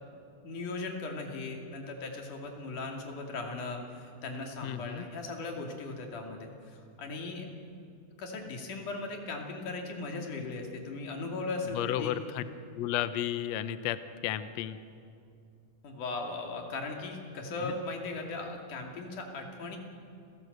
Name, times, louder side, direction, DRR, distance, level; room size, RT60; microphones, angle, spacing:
voice 1, 0.4-7.5 8.2-12.1 15.8-19.8, left 3 dB, 90° left, 2 dB, 4.1 m, -38 dB
voice 2, 4.6-5.1 11.7-12.4 12.7-14.8 17.6-17.7, left 11 dB, 70° left, 12 dB, 1.9 m, -33 dB
29.0 x 17.5 x 8.0 m, 2.5 s
omnidirectional pair, 3.5 m